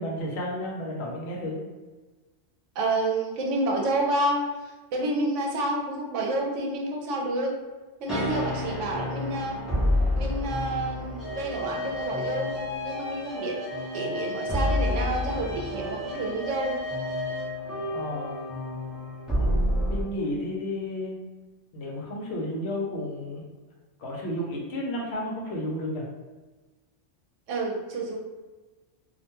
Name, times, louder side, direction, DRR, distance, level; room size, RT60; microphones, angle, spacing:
voice 1, 0.0-1.6 17.9-18.3 19.3-21.2 21.7-23.4 24.0-26.0, left 1 dB, 70° left, -2 dB, 0.8 m, -32 dB
voice 2, 2.8-7.6 8.0-9.6 10.1-13.6 13.9-16.8 27.5-28.2, right 2 dB, 85° right, 0 dB, 0.9 m, -29 dB
sound 1, 8.1-20.0, left 1 dB, ahead, 0.5 m, -29 dB
2.4 x 2.1 x 2.9 m, 1.2 s
omnidirectional pair, 1.2 m